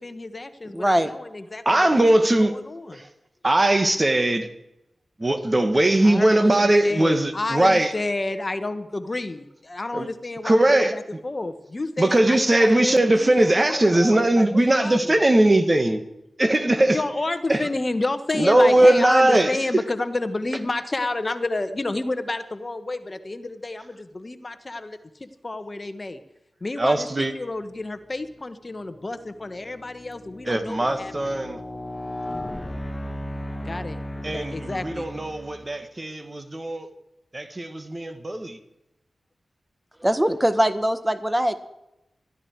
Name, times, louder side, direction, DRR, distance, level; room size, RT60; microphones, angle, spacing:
voice 1, 0.0-3.0 6.0-15.2 16.9-26.2 26.6-31.1 33.6-34.0 34.3-35.1, left 2 dB, 40° left, 1.3 m, -30 dB
voice 2, 0.7-1.1 40.0-41.5, equal, 10° right, 1.5 m, -21 dB
voice 3, 1.7-2.5 2.9-3.1 3.4-4.5 5.2-7.9 9.9-10.1 10.4-10.9 12.0-16.0 16.4-17.0 17.5-17.7 18.3-19.5 26.8-27.3 30.5-31.6 34.2-36.9 37.3-38.6, right 1 dB, 30° right, 1.9 m, -20 dB
sound 1, 28.1-28.4 29.0-35.8, left 1 dB, 25° left, 1.6 m, -36 dB
21.0 x 14.5 x 4.7 m
cardioid pair, 50°, 0 cm